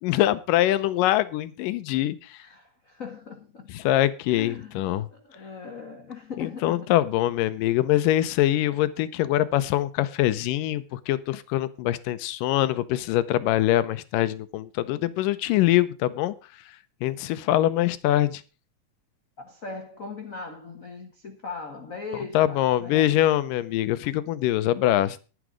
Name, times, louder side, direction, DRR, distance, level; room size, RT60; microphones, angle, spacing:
voice 1, 0.0-2.4 3.7-5.1 6.4-16.3 17.0-18.4 22.3-25.2, left 14 dB, 90° left, 2.4 m, -23 dB
voice 2, 2.4-3.9 4.3-4.8 5.1-6.9 17.2-17.4 19.4-23.1, left 4 dB, 60° left, 0.8 m, -39 dB
11.0 x 10.5 x 5.0 m
omnidirectional pair, 3.7 m